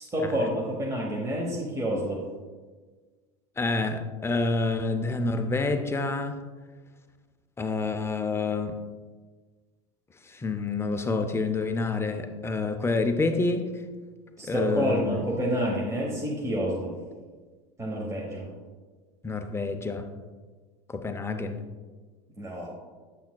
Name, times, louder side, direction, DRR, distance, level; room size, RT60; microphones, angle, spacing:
voice 1, 0.0-2.2 14.4-16.9 17.8-18.5 22.4-22.7, equal, 15° right, -3 dB, 1.1 m, -28 dB
voice 2, 3.6-6.4 7.6-8.7 10.3-13.7 14.4-15.2 19.2-20.1 20.9-21.6, left 3 dB, 15° left, 7 dB, 0.5 m, -28 dB
8.3 x 5.8 x 2.3 m, 1.4 s
hypercardioid pair, 100°, 19 cm